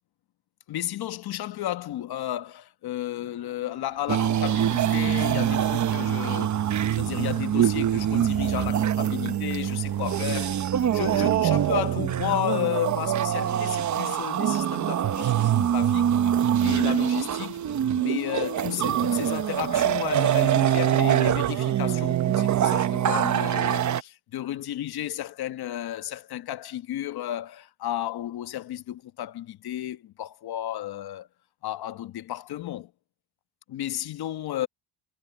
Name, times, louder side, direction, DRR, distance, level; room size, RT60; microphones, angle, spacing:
voice 1, 0.7-16.3 16.6-17.6 17.9-31.3 31.6-32.9 33.7-34.7, left 12 dB, 50° left, 1.3 m, -33 dB
sound 1, 3.2-11.4, right 12 dB, 55° right, 2.8 m, -51 dB
sound 2, 4.1-24.0, right 10 dB, 35° right, 1.0 m, -24 dB
cardioid pair, 110°, 49 cm